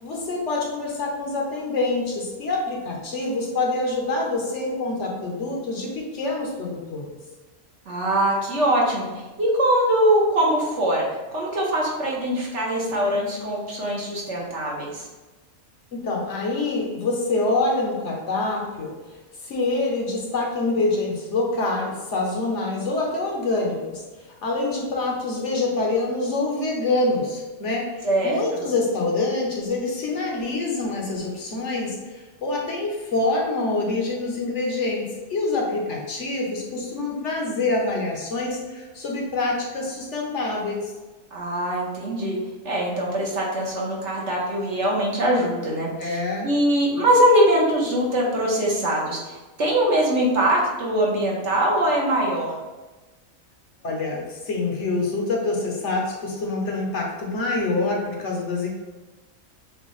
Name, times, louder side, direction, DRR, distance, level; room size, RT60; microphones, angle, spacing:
voice 1, 0.0-7.1 15.9-18.9 19.4-24.0 24.4-40.9 46.0-46.5 53.8-58.7, left 2 dB, 60° left, -1 dB, 1.1 m, -26 dB
voice 2, 7.9-9.1 9.4-11.0 11.3-15.1 28.0-28.6 41.3-42.4 42.6-46.2 46.4-52.6, right 1 dB, 55° right, -2 dB, 1.3 m, -22 dB
7.1 x 2.4 x 3.1 m, 1.2 s
omnidirectional pair, 1.5 m